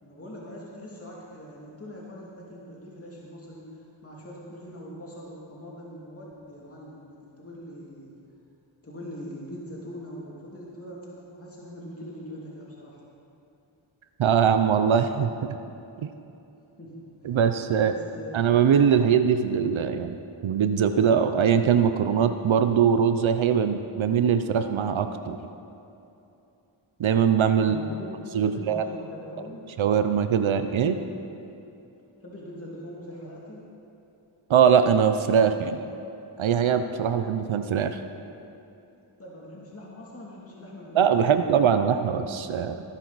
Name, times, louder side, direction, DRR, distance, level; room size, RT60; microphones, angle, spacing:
voice 1, 0.0-8.1 8.8-13.0 16.8-17.4 17.8-18.9 27.6-29.6 32.2-33.7 39.2-41.4, equal, 30° left, -5 dB, 2.6 m, -42 dB
voice 2, 14.2-15.5 16.0-16.1 17.2-17.9 18.3-20.2 20.4-25.4 27.0-27.8 28.3-28.8 29.8-31.0 34.5-35.9 36.4-38.0 40.9-42.8, right 7 dB, 75° right, 9 dB, 0.7 m, -22 dB
17.5 x 10.5 x 4.1 m, 2.8 s
cardioid pair, 65°, 48 cm